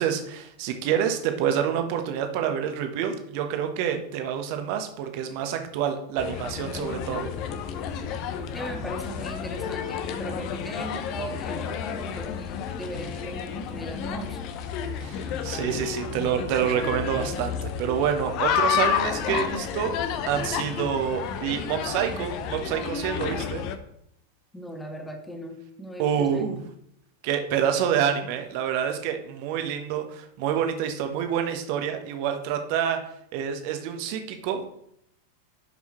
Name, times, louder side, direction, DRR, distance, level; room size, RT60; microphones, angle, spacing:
voice 1, 0.0-7.3 15.0-19.9 20.3-23.6 26.0-26.6 27.2-33.0 33.3-34.7, right 8 dB, 45° right, 6 dB, 1.1 m, -27 dB
sound 1, 6.2-23.8, left 8 dB, 40° left, 0.7 m, -31 dB
voice 2, 8.5-14.5 24.5-26.4, right 1 dB, 5° left, 3 dB, 1.5 m, -38 dB
11.5 x 5.5 x 3.1 m, 0.73 s
figure-of-eight pair, 90°, 0 cm